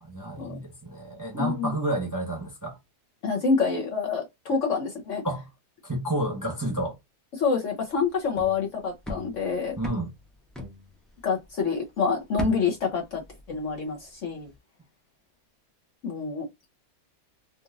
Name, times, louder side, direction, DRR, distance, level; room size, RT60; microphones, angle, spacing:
voice 1, 0.0-2.8 5.2-5.5 5.8-7.0 9.8-10.1, right 1 dB, 15° right, 0.8 m, -30 dB
voice 2, 1.3-1.7 3.2-5.2 7.4-9.8 11.2-13.2 13.5-14.5 16.0-16.5, left 5 dB, 55° left, 1.0 m, -27 dB
sound 1, 7.9-11.7 12.0-14.0 14.3-14.6, left 1 dB, ahead, 0.4 m, -39 dB
3.9 x 2.5 x 2.4 m
omnidirectional pair, 1.8 m